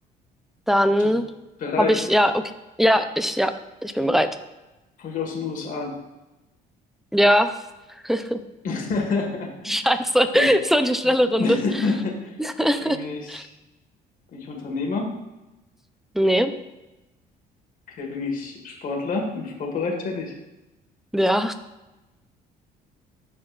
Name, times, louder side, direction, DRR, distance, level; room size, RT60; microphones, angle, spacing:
voice 1, 0.7-1.2 1.8-2.4 2.8-3.5 3.8-4.3 7.1-7.5 8.0-8.4 9.7-11.6 12.4-13.0 13.3-13.4 16.2-16.5 21.1-21.5, equal, ahead, 9 dB, 0.4 m, -20 dB
voice 2, 1.6-2.0 5.0-6.0 8.6-9.8 10.3-10.5 11.0-11.1 11.4-12.4 12.8-13.5 14.3-15.1 17.9-20.4, left 4 dB, 55° left, 0 dB, 1.5 m, -28 dB
12.5 x 4.2 x 2.4 m, 1.0 s
cardioid pair, 110°, 17 cm